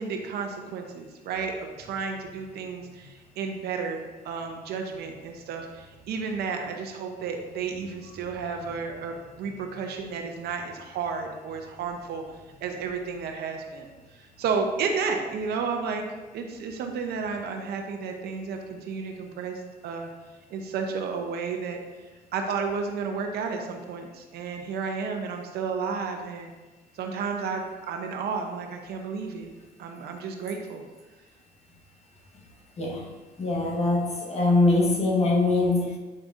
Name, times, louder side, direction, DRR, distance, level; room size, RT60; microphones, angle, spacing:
voice 1, 0.0-12.2 12.6-13.9 14.4-16.1 16.3-20.1 20.5-21.8 22.3-26.5 27.0-29.5 29.8-30.8, right 5 dB, 70° right, 4 dB, 0.9 m, -32 dB
voice 2, 33.4-36.0, left 2 dB, 40° left, 0 dB, 1.4 m, -23 dB
8.6 x 4.7 x 2.7 m, 1.2 s
cardioid pair, 110°, 17 cm